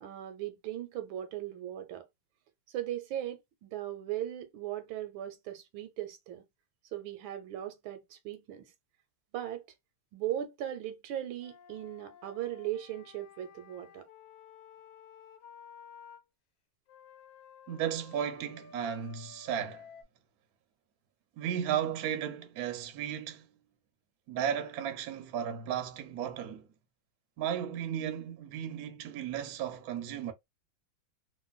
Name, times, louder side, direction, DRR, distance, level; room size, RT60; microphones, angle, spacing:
voice 1, 0.0-2.1 2.7-6.4 6.9-8.7 9.3-9.6 10.1-14.0, right 12 dB, 80° right, 1.4 m, -38 dB
Wind instrument woodwind instrument, 11.4-16.2 16.9-20.0, left 7 dB, 70° left, 1.2 m, -54 dB
voice 2, 17.7-19.9 21.4-23.5 24.3-26.7 27.4-30.3, right 9 dB, 65° right, 1.0 m, -35 dB
3.1 x 2.5 x 2.2 m
omnidirectional pair, 2.2 m